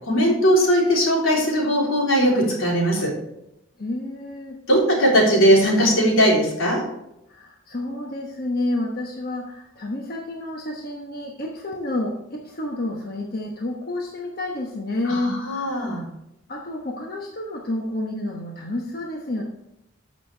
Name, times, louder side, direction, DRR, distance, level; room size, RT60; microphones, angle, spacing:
voice 1, 0.0-3.1 4.7-6.8 15.1-16.0, equal, 85° left, -3 dB, 3.7 m, -19 dB
voice 2, 3.8-4.6 7.3-16.0 16.5-19.4, left 1 dB, 50° left, 0 dB, 1.1 m, -30 dB
13.5 x 6.3 x 3.4 m, 0.86 s
head